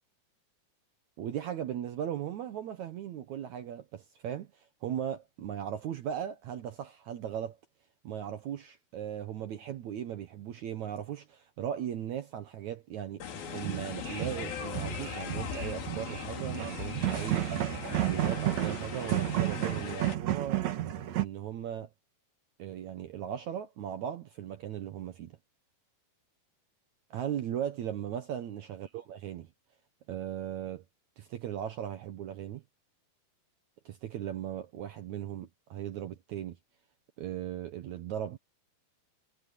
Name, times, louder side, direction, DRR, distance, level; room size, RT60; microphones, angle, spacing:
voice 1, 1.2-7.6 8.0-13.3 13.5-20.7 21.1-21.9 22.6-25.3 27.1-29.5 30.1-30.8 31.2-32.6 33.9-36.6 37.2-38.4, right 10 dB, 80° right, 1.7 m, -38 dB
sound 1, 13.2-20.2, left 7 dB, 60° left, 4.4 m, -39 dB
sound 2, 13.5-21.2, right 13 dB, 60° right, 1.8 m, -32 dB
omnidirectional pair, 4.8 m